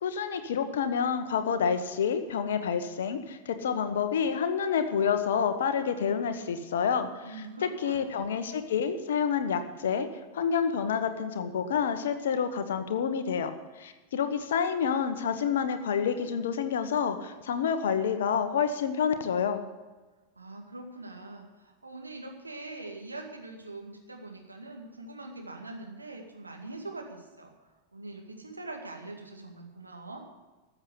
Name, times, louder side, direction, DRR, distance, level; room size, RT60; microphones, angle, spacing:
voice 1, 0.0-7.2 7.8-10.1 10.3-13.5 13.8-19.6, left 7 dB, 60° left, 9 dB, 1.1 m, -28 dB
voice 2, 7.2-8.2 20.4-30.2, right 2 dB, 80° right, 2 dB, 2.0 m, -43 dB
13.5 x 7.3 x 8.1 m, 1.2 s
figure-of-eight pair, 90°, 0 cm